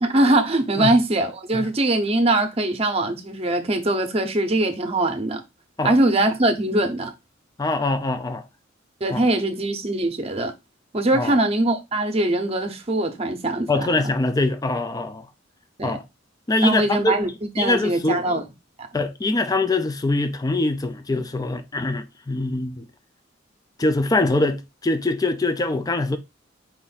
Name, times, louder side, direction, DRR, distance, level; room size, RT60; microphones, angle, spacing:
voice 1, 0.0-5.4 5.8-7.1 9.0-10.5 10.9-13.9 15.8-16.0 16.6-17.3 17.6-18.4, right 2 dB, 30° right, 0.8 m, -22 dB
voice 2, 7.6-8.4 9.1-9.3 11.1-11.3 13.7-15.3 15.8-16.1 16.5-17.2 17.6-18.2 18.9-22.9 23.8-26.2, left 2 dB, 20° left, 0.4 m, -23 dB
4.5 x 2.5 x 3.9 m
head